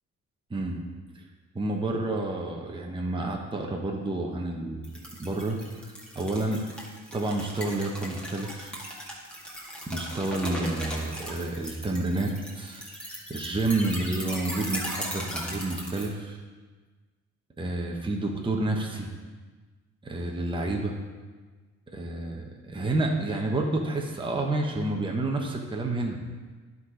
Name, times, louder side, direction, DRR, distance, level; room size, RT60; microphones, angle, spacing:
voice 1, 0.5-0.8 1.1-1.2 1.5-4.8 5.1-6.6 7.1-8.8 9.9-12.8 13.3-16.4 17.6-19.1 20.0-20.9 21.9-26.2, right 2 dB, 15° right, 0 dB, 1.1 m, -29 dB
sound 1, 4.8-16.1, equal, 5° left, 2.1 m, -38 dB
10.5 x 4.1 x 5.0 m, 1.4 s
cardioid pair, 90°, 30 cm